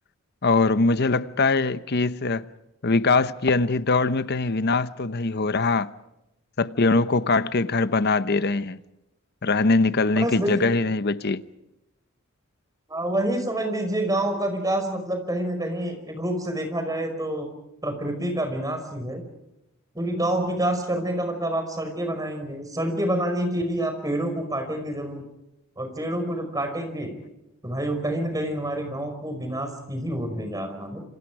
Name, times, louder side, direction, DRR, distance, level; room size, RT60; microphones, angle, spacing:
voice 1, 0.4-2.5 2.8-5.9 6.6-8.8 9.4-11.4, left 3 dB, 50° left, 0.9 m, -22 dB
voice 2, 10.2-10.6 12.9-17.5 17.8-19.2 20.0-25.2 25.8-27.2 27.6-31.0, right 1 dB, 15° right, 5.3 m, -27 dB
27.5 x 27.5 x 4.9 m
head